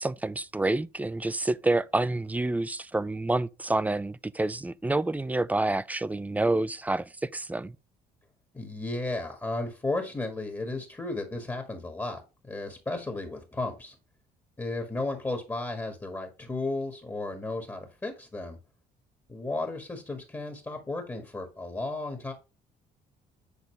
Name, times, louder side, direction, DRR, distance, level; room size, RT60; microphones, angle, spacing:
voice 1, 0.0-7.8, right 2 dB, 10° right, 0.4 m, -28 dB
voice 2, 8.5-14.0 14.6-18.6 19.3-22.3, left 2 dB, 15° left, 1.7 m, -34 dB
8.4 x 3.9 x 3.3 m
cardioid pair, 110°, 17 cm